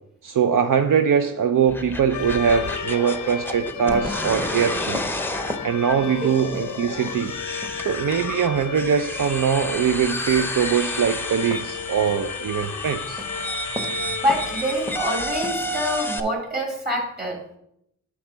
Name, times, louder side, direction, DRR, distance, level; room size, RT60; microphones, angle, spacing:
voice 1, 0.2-5.2 5.6-7.3 7.8-13.2, right 7 dB, 80° right, 7 dB, 0.5 m, -22 dB
sound 1, 1.5-15.9, equal, 10° right, 0.9 m, -40 dB
sound 2, 1.7-16.2, left 1 dB, 5° left, 0.6 m, -32 dB
sound 3, 2.1-15.1, left 7 dB, 65° left, 0.5 m, -34 dB
voice 2, 14.2-17.4, equal, 30° right, -1 dB, 2.9 m, -25 dB
9.5 x 3.6 x 6.0 m, 0.75 s
wide cardioid pair, 75°, 31 cm